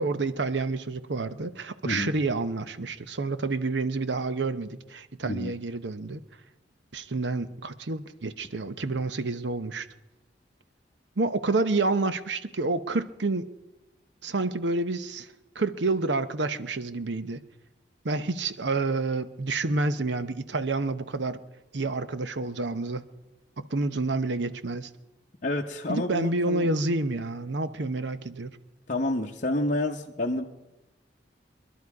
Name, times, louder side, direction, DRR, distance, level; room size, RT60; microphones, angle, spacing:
voice 1, 0.0-6.2 6.9-9.9 11.2-13.5 14.2-15.3 15.5-17.4 18.0-21.4 21.7-23.0 23.6-24.9 25.9-28.6, right 3 dB, 75° right, 11 dB, 0.8 m, -29 dB
voice 2, 25.4-26.7 28.9-30.4, left 1 dB, 45° left, 0 dB, 0.8 m, -29 dB
23.0 x 11.5 x 4.8 m, 1.0 s
head